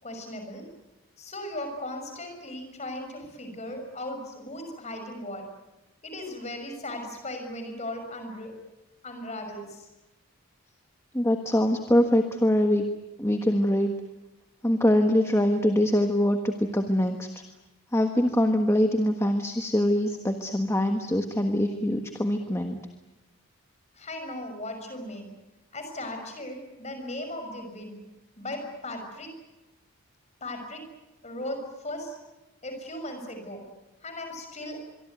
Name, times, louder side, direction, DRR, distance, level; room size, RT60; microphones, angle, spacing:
voice 1, 0.0-0.6 1.2-5.4 6.0-8.5 9.0-9.9 23.9-25.3 25.7-28.0 28.4-29.3 30.4-30.8 31.2-32.2 32.6-33.6 34.0-34.8, left 1 dB, 30° left, 5 dB, 6.4 m, -37 dB
voice 2, 11.1-12.9 13.2-13.9 14.6-17.4 17.9-22.8, left 1 dB, 10° left, 5 dB, 1.4 m, -23 dB
25.5 x 23.5 x 9.4 m, 1.0 s
head